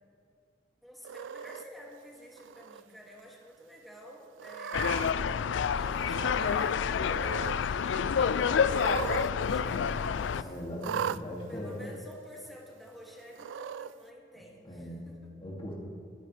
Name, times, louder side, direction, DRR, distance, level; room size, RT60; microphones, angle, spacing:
voice 1, 0.8-5.3 5.7-10.8 11.5-15.3, equal, ahead, -3 dB, 2.2 m, -50 dB
Cat, 1.0-1.6 2.4-2.8 3.2-3.3 4.4-5.1 6.1-6.8 7.0-7.6 8.6-9.3 9.6-9.7 10.8-11.2 12.1-12.2 13.3-13.9, right 8 dB, 80° right, 0.3 m, -37 dB
sound 1, 4.7-10.4, left 6 dB, 80° left, 0.4 m, -28 dB
voice 2, 10.4-11.8 14.6-15.1 15.4-15.7, left 1 dB, 30° left, -3 dB, 2.3 m, -39 dB
23.0 x 10.5 x 3.3 m, 2.5 s
head